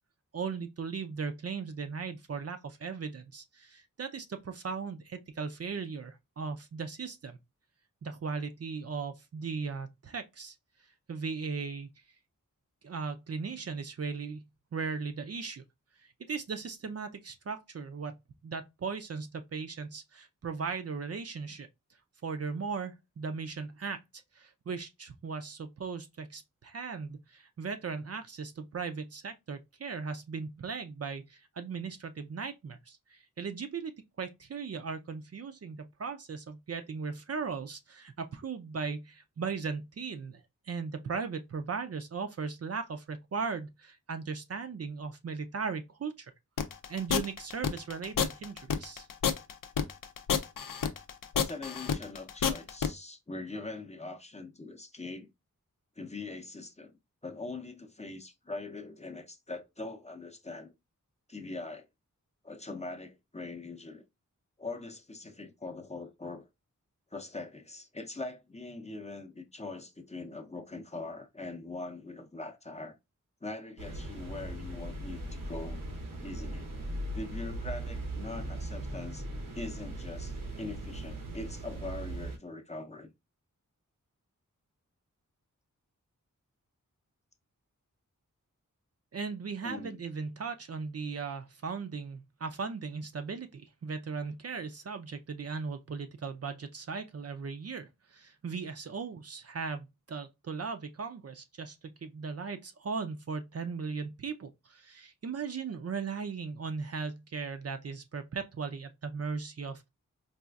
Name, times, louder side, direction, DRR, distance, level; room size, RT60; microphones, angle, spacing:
voice 1, 0.3-7.4 8.0-10.5 11.1-11.9 12.8-14.4 14.7-15.6 16.3-18.1 18.4-21.7 22.2-24.0 24.3-33.9 34.2-46.3 46.9-49.1 89.1-109.9, right 5 dB, 50° right, 0.5 m, -38 dB
sound 1, 46.6-52.9, left 7 dB, 85° left, 0.5 m, -29 dB
voice 2, 51.3-55.3 56.0-57.0 57.2-60.7 61.3-61.9 62.4-64.0 64.6-66.5 67.1-73.0 73.4-75.8 76.2-76.7 77.1-79.3 79.5-83.1 89.6-90.0, left 3 dB, 20° left, 0.6 m, -42 dB
sound 2, 73.8-82.4, right 1 dB, 85° right, 1.0 m, -39 dB
4.0 x 2.4 x 2.3 m
wide cardioid pair, 60°, 32 cm